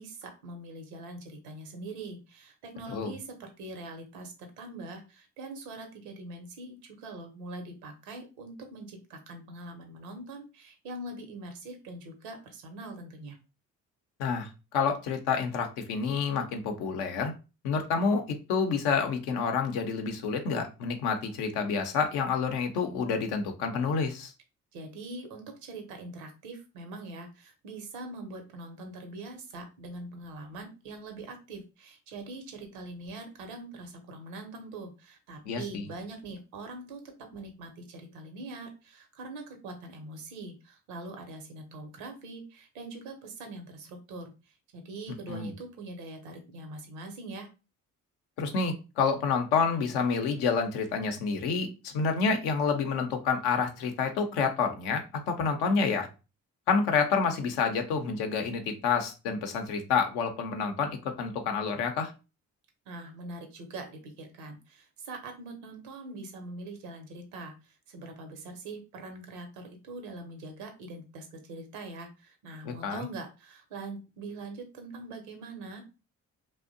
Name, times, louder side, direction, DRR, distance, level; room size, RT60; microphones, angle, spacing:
voice 1, 0.0-13.4 24.7-37.0 37.3-47.5 62.9-75.8, right 2 dB, 85° right, 5 dB, 0.7 m, -43 dB
voice 2, 14.2-17.3 17.6-24.3 35.5-35.8 45.3-45.5 48.4-56.1 56.7-62.1 72.6-73.0, left 5 dB, 75° left, 5 dB, 0.6 m, -28 dB
2.6 x 2.0 x 2.5 m, 0.30 s
hypercardioid pair, 45°, 38 cm